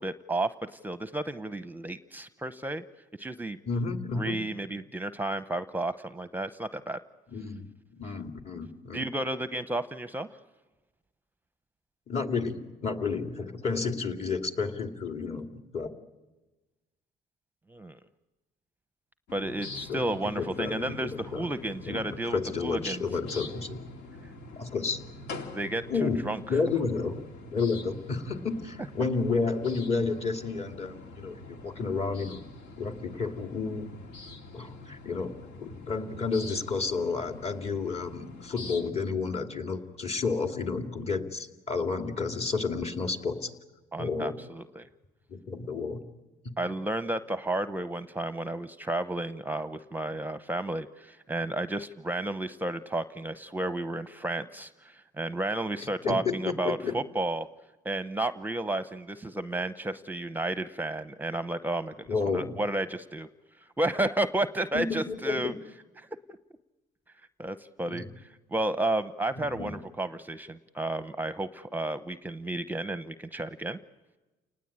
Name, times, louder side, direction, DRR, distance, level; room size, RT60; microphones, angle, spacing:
voice 1, 0.0-2.8 3.2-3.6 4.1-7.0 8.9-10.3 17.7-18.0 19.3-23.0 25.5-26.6 43.9-44.9 46.6-57.5 57.8-61.9 62.3-63.3 63.8-65.5 66.0-66.1 67.4-73.8, right 1 dB, 10° right, 12 dB, 0.7 m, -32 dB
voice 2, 3.7-4.3 7.3-9.1 12.1-15.9 19.9-21.5 21.9-23.8 24.6-25.0 25.9-26.2 26.5-27.2 27.5-32.4 32.8-33.9 34.5-43.5 44.0-44.4 45.3-46.0 55.8-57.0 62.1-62.6 64.7-65.6 67.9-68.0 69.3-69.8, left 4 dB, 40° left, 5 dB, 2.7 m, -31 dB
sound 1, 19.3-38.9, left 3 dB, 80° left, 2.5 m, -45 dB
29.5 x 19.5 x 8.8 m, 1.2 s
cardioid pair, 110°, 17 cm